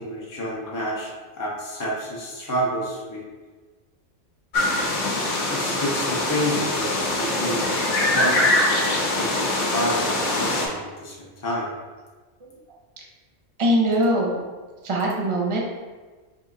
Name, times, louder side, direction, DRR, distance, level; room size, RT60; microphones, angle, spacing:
voice 1, 0.0-3.2 5.5-8.4 9.1-11.7, equal, 25° left, -4 dB, 0.4 m, -29 dB
sound 1, 4.5-10.7, left 1 dB, 85° left, 1.1 m, -23 dB
voice 2, 13.6-14.4 14.8-15.6, right 1 dB, 35° right, -1 dB, 0.5 m, -22 dB
3.7 x 2.7 x 3.7 m, 1.3 s
omnidirectional pair, 1.3 m